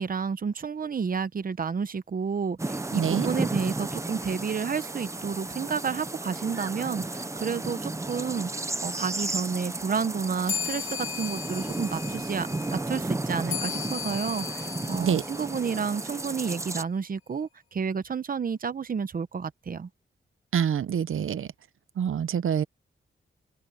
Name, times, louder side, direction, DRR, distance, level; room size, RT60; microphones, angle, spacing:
voice 1, 0.0-19.9, right 6 dB, 45° right, 0.9 m, -31 dB
sound 1, 2.6-16.8, right 2 dB, 15° right, 0.7 m, -33 dB
voice 2, 2.9-3.3 15.0-15.2 20.5-21.5 22.0-22.6, right 8 dB, 85° right, 0.8 m, -26 dB
sound 2, 10.5-16.3, left 8 dB, 75° left, 3.3 m, -37 dB
open air
wide cardioid pair, 155°, 21 cm